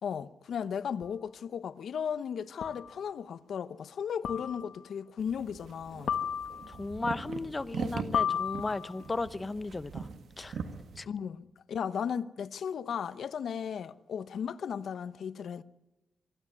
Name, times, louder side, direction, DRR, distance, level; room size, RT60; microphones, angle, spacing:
voice 1, 0.0-6.2 11.0-15.6, left 7 dB, 75° left, 0.8 m, -36 dB
sound 1, 1.0-1.1 2.6-3.0 4.2-4.8 6.1-6.8 8.1-9.1, left 8 dB, 90° left, 1.4 m, -33 dB
sound 2, 5.2-11.0, right 5 dB, 70° right, 1.7 m, -41 dB
voice 2, 6.7-10.1 10.4-10.6 11.0-11.1, left 3 dB, 25° left, 0.8 m, -35 dB
24.5 x 12.5 x 9.7 m
wide cardioid pair, 120°, 0 cm